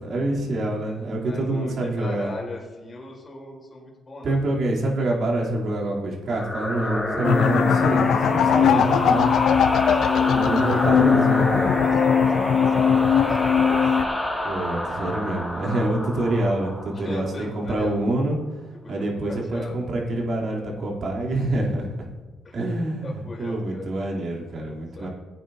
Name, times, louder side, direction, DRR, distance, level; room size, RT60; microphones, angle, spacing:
voice 1, 0.0-2.3 4.2-9.3 10.3-11.6 14.4-18.4 18.9-22.1 22.5-25.1, right 1 dB, 55° right, -2 dB, 3.1 m, -26 dB
voice 2, 1.2-4.4 8.6-9.3 9.8-14.2 16.9-18.0 18.8-19.8 22.4-22.7 23.0-23.9 24.9-25.1, left 2 dB, 35° left, -2 dB, 3.5 m, -38 dB
sound 1, 6.3-17.6, left 1 dB, 5° left, 2.6 m, -28 dB
sound 2, 7.2-14.1, left 7 dB, 70° left, 0.5 m, -20 dB
16.5 x 9.1 x 2.7 m, 1.3 s
cardioid pair, 90°, 0 cm